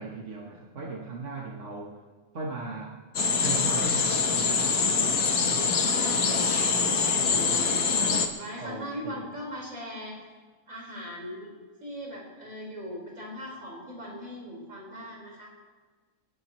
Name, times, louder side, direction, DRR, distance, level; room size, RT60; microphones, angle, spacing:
voice 1, 0.0-2.0 2.3-3.0 3.4-4.8 8.6-9.3, right 3 dB, 60° right, -2 dB, 1.7 m, -37 dB
sound 1, 3.2-8.3, left 5 dB, 85° left, 1.7 m, -24 dB
voice 2, 5.8-7.8 8.3-10.2 10.7-11.6 11.8-15.5, equal, 75° right, -4 dB, 5.2 m, -40 dB
28.0 x 11.5 x 3.1 m, 1.4 s
omnidirectional pair, 1.5 m